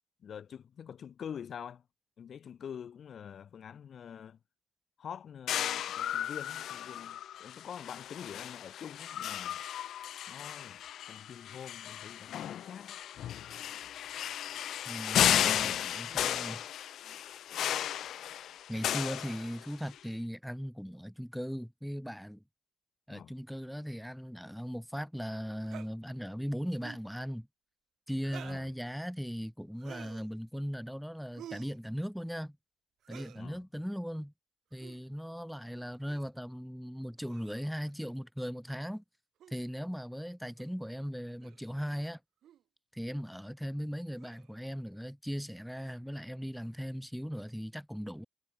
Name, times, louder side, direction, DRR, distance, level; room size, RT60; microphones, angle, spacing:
voice 1, 0.2-1.8 2.2-4.4 5.0-9.6 10.3-12.9 23.1-23.4 28.4-28.7 33.3-33.6, left 8 dB, 55° left, 2.4 m, -46 dB
sound 1, 5.5-19.9, left 11 dB, 75° left, 0.5 m, -34 dB
voice 2, 14.8-16.6 18.7-22.4 23.1-27.5 28.1-32.6 33.1-34.3 34.7-39.0 39.5-42.2 42.9-48.2, equal, ahead, 2.9 m, -38 dB
sound 2, 25.6-25.9 26.7-27.1 28.2-28.7 29.8-30.3 31.4-31.8 33.0-33.4 34.7-35.0 36.1-36.3 37.3-37.7 39.4-39.5 40.6-40.7 41.4-41.6 42.4-42.6 44.2-44.5, right 11 dB, 75° right, 1.1 m, -50 dB
cardioid pair, 90°, 0 cm